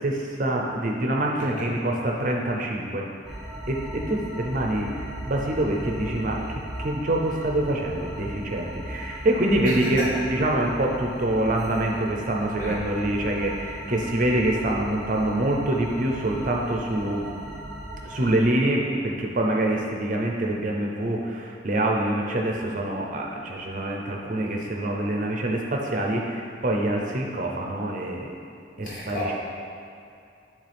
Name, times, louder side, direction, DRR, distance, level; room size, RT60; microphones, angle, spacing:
voice 1, 0.0-3.1 3.7-4.9 5.3-17.3 18.0-28.3 28.8-29.3, right 1 dB, 45° right, 0 dB, 0.6 m, -25 dB
sound 1, 3.2-18.4, right 1 dB, ahead, 1.0 m, -37 dB
voice 2, 28.8-29.3, left 1 dB, 45° left, -6 dB, 1.4 m, -31 dB
10.0 x 3.5 x 3.4 m, 2.5 s
head